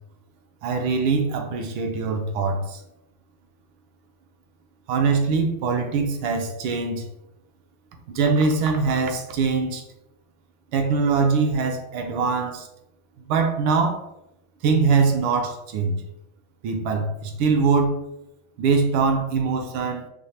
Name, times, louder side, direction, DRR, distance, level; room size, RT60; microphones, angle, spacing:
voice 1, 0.6-2.8 4.9-7.0 8.1-9.8 10.7-12.7 13.3-14.0 14.6-16.0 16.6-18.0 18.6-20.0, right 4 dB, 75° right, 4 dB, 1.4 m, -22 dB
5.1 x 2.1 x 2.8 m, 0.85 s
omnidirectional pair, 2.4 m